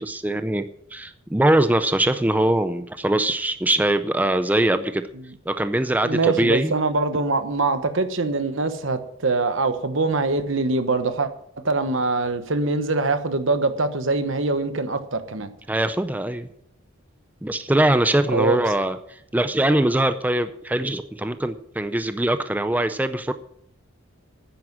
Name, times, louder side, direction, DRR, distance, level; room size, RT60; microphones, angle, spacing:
voice 1, 0.0-5.0 5.5-6.7 15.7-16.5 17.4-23.3, right 1 dB, 10° right, 0.5 m, -22 dB
voice 2, 5.9-11.3 11.6-15.5 18.3-18.6, right 3 dB, 65° right, 1.2 m, -23 dB
9.9 x 9.8 x 7.3 m
head